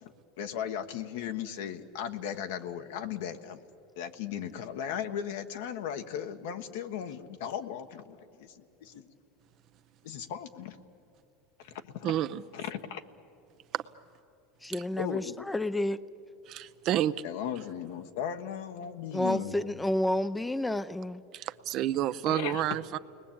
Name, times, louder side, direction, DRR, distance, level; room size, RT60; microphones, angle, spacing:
voice 1, 0.0-3.6 4.0-9.1 10.0-10.8 11.6-12.1 12.5-13.0 15.0-15.5 17.2-19.8 22.3-22.6, left 9 dB, 75° left, 1.3 m, -37 dB
voice 2, 12.0-12.4 13.7-13.8 16.5-17.1 21.3-23.0, right 12 dB, 50° right, 0.7 m, -29 dB
voice 3, 14.6-16.0 19.1-21.2, left 1 dB, 5° left, 0.6 m, -30 dB
29.5 x 20.0 x 8.7 m
supercardioid pair, 110°, 0 cm